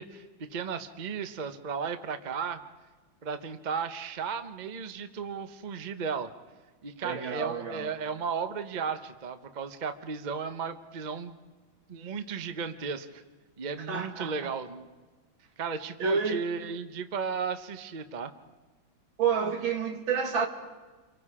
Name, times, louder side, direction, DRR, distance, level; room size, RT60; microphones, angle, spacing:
voice 1, 0.0-2.6 3.2-6.3 6.8-11.4 11.9-13.2 13.6-14.9 15.6-18.3, right 6 dB, 35° right, 0.7 m, -35 dB
voice 2, 7.0-7.9 13.9-14.5 16.0-16.4 19.2-20.5, right 5 dB, 75° right, 2.6 m, -29 dB
29.0 x 24.0 x 4.9 m
omnidirectional pair, 2.2 m